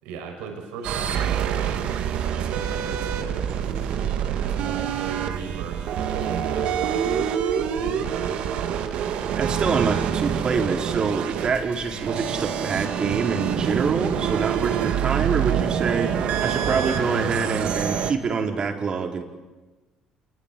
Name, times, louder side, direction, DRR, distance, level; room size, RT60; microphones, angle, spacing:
voice 1, 0.0-7.3 7.7-8.9, right 6 dB, 85° right, 3 dB, 5.4 m, -38 dB
sound 1, 0.8-18.1, right 8 dB, 70° right, 2.4 m, -26 dB
voice 2, 9.4-19.2, right 5 dB, 45° right, 4 dB, 4.3 m, -26 dB
27.5 x 22.0 x 8.6 m, 1.2 s
supercardioid pair, 75°, 2 cm